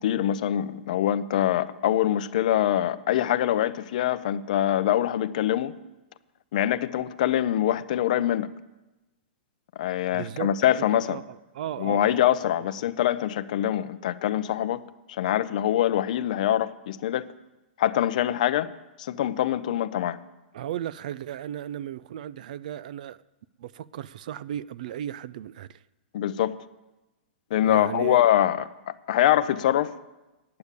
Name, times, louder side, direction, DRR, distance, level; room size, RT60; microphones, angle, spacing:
voice 1, 0.0-5.7 6.5-8.5 9.8-11.2 11.8-14.8 15.1-17.3 17.8-18.7 19.0-20.2 26.1-26.5 27.5-29.9, left 12 dB, 45° left, 0.5 m, -24 dB
voice 2, 10.1-10.5 10.8-12.3 20.5-23.2 23.6-25.8 27.6-28.2, right 11 dB, 45° right, 0.3 m, -35 dB
9.4 x 8.6 x 8.2 m
supercardioid pair, 175°, 6 cm